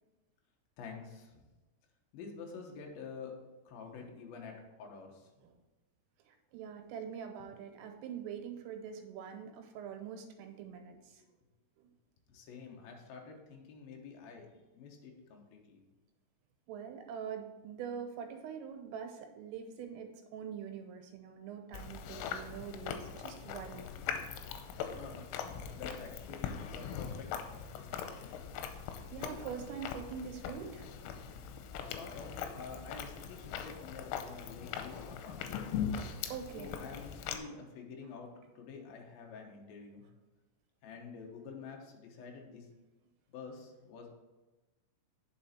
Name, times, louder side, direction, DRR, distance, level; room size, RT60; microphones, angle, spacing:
voice 1, 0.8-1.3 2.1-3.3 3.7-4.5 4.8-5.2 12.3-14.5 14.7-15.8 24.9-25.3 25.7-28.4 31.8-35.8 36.2-38.3 38.6-40.0 40.8-42.7 43.3-44.1, left 5 dB, 70° left, 1 dB, 2.3 m, -48 dB
voice 2, 6.3-11.2 16.7-23.8 28.5-28.6 29.0-30.9 32.9-33.0 36.3-36.8, right 7 dB, 85° right, 5 dB, 3.5 m, -44 dB
Chewing mastication, 21.7-37.4, left 7 dB, 90° left, 3.2 m, -41 dB
9.2 x 6.2 x 4.3 m, 1.1 s
omnidirectional pair, 5.8 m